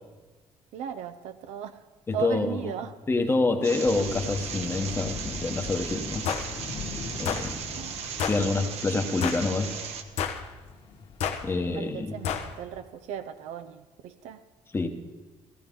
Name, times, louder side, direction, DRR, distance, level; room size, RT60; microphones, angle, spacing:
voice 1, 0.7-1.8 2.1-2.9 7.7-8.0 11.5-14.4, right 9 dB, 90° right, 10 dB, 0.6 m, -37 dB
voice 2, 2.1-2.6 3.1-6.2 7.2-7.6 8.3-9.7 11.4-12.2 14.7-14.9, left 3 dB, 20° left, 5 dB, 1.0 m, -27 dB
sound 1, 3.6-10.0, right 7 dB, 70° right, 1.0 m, -37 dB
sound 2, 3.8-12.7, left 4 dB, 50° left, 1.6 m, -41 dB
sound 3, 6.3-6.5 7.3-7.5 8.2-8.4 9.2-9.5 10.2-10.5 11.2-11.4 12.2-12.5, left 7 dB, 75° left, 1.0 m, -29 dB
15.5 x 15.0 x 3.7 m, 1.3 s
cardioid pair, 140°, 11 cm